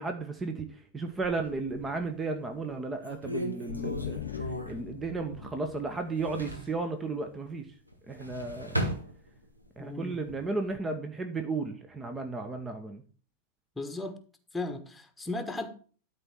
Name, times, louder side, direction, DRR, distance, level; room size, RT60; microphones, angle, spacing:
voice 1, 0.0-4.2 4.7-7.7 8.1-8.9 9.8-13.0, right 3 dB, 15° right, 1.0 m, -34 dB
sound 1, 1.1-2.1 2.6-2.7 3.0-5.7 6.0-6.8 7.9-9.7 10.1-10.8, right 1 dB, 85° right, 1.6 m, -37 dB
sound 2, 3.7-7.3, left 11 dB, 60° left, 0.4 m, -41 dB
voice 2, 9.8-10.2 13.7-14.2 14.5-15.7, left 2 dB, 5° left, 1.4 m, -36 dB
12.5 x 4.2 x 6.0 m
figure-of-eight pair, 90°, 0 cm